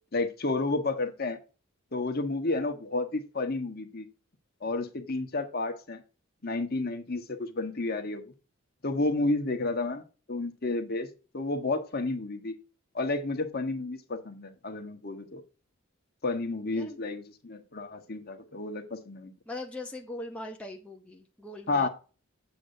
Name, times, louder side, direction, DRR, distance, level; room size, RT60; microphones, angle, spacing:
voice 1, 0.1-1.4 1.9-4.1 4.6-6.0 6.4-8.3 8.8-10.0 10.3-11.1 11.3-12.5 12.9-15.4 16.2-19.3 21.7-21.9, left 2 dB, 45° left, 1.2 m, -31 dB
voice 2, 19.5-21.9, left 1 dB, 5° left, 0.9 m, -40 dB
8.3 x 8.0 x 2.7 m
head